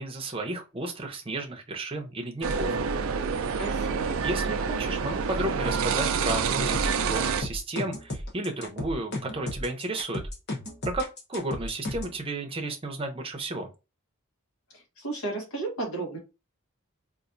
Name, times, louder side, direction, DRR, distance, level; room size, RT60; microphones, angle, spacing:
voice 1, 0.0-2.8 4.2-10.2 10.9-13.7, right 2 dB, 25° right, 4 dB, 0.6 m, -33 dB
sound 1, 2.4-7.4, right 5 dB, 70° right, 0.4 m, -27 dB
voice 2, 3.6-4.2 15.0-16.2, right 3 dB, 75° left, 1 dB, 1.3 m, -33 dB
sound 2, 6.7-12.2, left 1 dB, 50° left, 1.0 m, -34 dB
4.0 x 2.5 x 2.5 m, 0.28 s
head